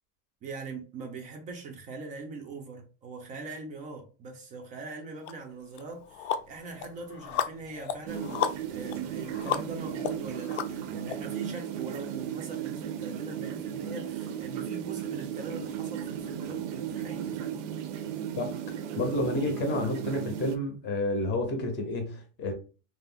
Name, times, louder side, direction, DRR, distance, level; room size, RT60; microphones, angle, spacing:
voice 1, 0.4-17.6, right 4 dB, 25° right, 0.3 m, -42 dB
sound 1, 5.2-5.3 5.8-11.2, left 9 dB, 75° left, 0.5 m, -34 dB
sound 2, 8.1-20.6, right 9 dB, 80° right, 0.6 m, -36 dB
voice 2, 19.0-22.5, left 1 dB, 30° left, 0.6 m, -30 dB
2.3 x 2.0 x 3.5 m
supercardioid pair, 150°, 35 cm